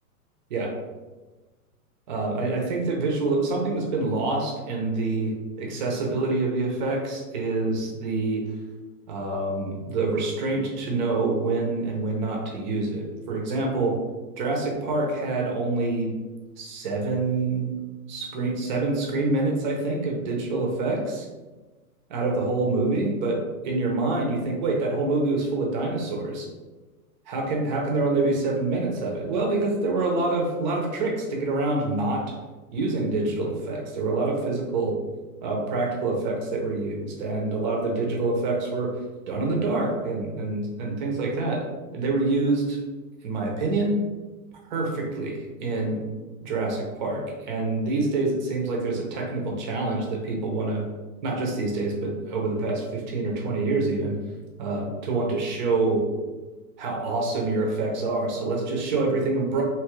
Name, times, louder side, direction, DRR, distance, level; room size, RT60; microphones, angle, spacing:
voice 1, 2.1-8.5 9.1-14.0 14.4-16.1 16.6-17.7 18.1-21.3 22.1-26.5 27.3-32.2 32.7-35.0 35.4-39.0 39.3-41.6 41.9-42.8 43.2-44.0 44.7-46.0 46.4-50.8 51.2-54.2 54.6-56.0 56.8-59.6, right 3 dB, 30° right, 0 dB, 0.5 m, -26 dB
2.8 x 2.3 x 3.0 m, 1.2 s
hypercardioid pair, 140°, 45 cm